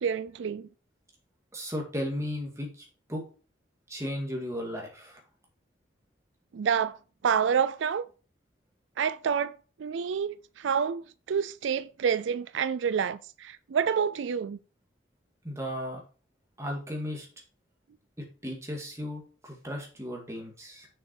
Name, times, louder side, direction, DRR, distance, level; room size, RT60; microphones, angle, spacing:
voice 1, 0.0-0.7 6.5-7.0 7.2-8.1 9.0-14.6, right 7 dB, 90° right, 0.4 m, -28 dB
voice 2, 1.5-3.2 3.9-5.2 15.4-16.0 16.6-17.3 18.2-20.9, equal, 15° right, 2.0 m, -35 dB
6.5 x 6.4 x 4.3 m
head